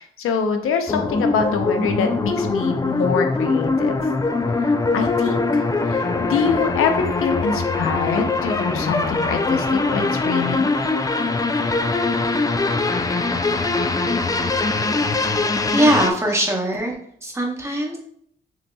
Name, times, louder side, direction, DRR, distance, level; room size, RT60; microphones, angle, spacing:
voice 1, 0.0-4.0 4.5-10.8, left 6 dB, 90° left, 5 dB, 0.6 m, -25 dB
sound 1, 0.9-16.1, left 3 dB, 15° left, 0.3 m, -22 dB
voice 2, 15.2-17.0 17.2-18.0, right 1 dB, 15° right, 0 dB, 1.0 m, -21 dB
5.6 x 2.8 x 2.2 m, 0.66 s
cardioid pair, 90°, 21 cm